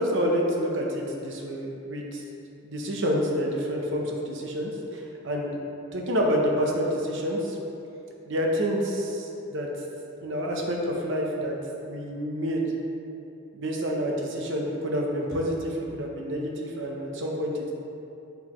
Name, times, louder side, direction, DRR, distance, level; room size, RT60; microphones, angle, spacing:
voice 1, 0.0-2.2 2.6-5.6 5.9-7.6 8.2-9.7 10.2-11.5 11.8-12.7 13.5-17.7, equal, 55° right, 0 dB, 0.8 m, -28 dB
7.1 x 5.8 x 3.1 m, 2.8 s
head